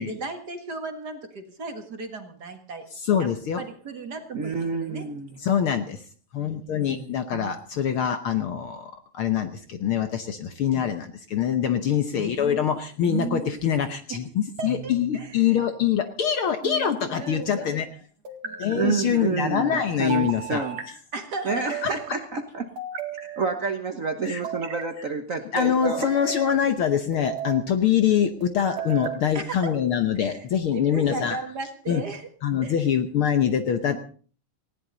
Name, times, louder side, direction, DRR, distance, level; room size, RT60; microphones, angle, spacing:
voice 1, 0.0-2.9 3.2-3.3 3.6-5.0 5.4-5.5 6.4-6.6 10.4-10.6 14.1-14.2 14.6-15.6 17.2-17.8 18.4-18.6 21.1-22.0 29.3-29.7 30.2-30.4 30.7-32.3 32.6-32.7, right 3 dB, 40° right, 6 dB, 1.9 m, -36 dB
voice 2, 3.0-3.6 5.4-6.0 6.3-17.9 18.6-20.6 21.8-21.9 24.2-24.4 25.5-31.4 31.9-32.0 32.4-34.0, left 8 dB, 60° left, 8 dB, 1.5 m, -24 dB
voice 3, 4.3-5.3 6.8-7.1 7.3-7.5 13.0-13.8 18.7-20.8 21.4-22.7 23.4-26.1 33.8-34.0, right 5 dB, 85° right, 6 dB, 0.7 m, -29 dB
sound 1, 14.6-15.3 16.6-17.4 18.2-19.0 20.1-20.9 21.5-22.1 22.8-23.6 24.3-24.9 25.6-26.6 27.1-27.7 28.4-29.2, right 6 dB, 60° right, 3.0 m, -35 dB
19.0 x 16.0 x 4.0 m, 0.42 s
omnidirectional pair, 3.3 m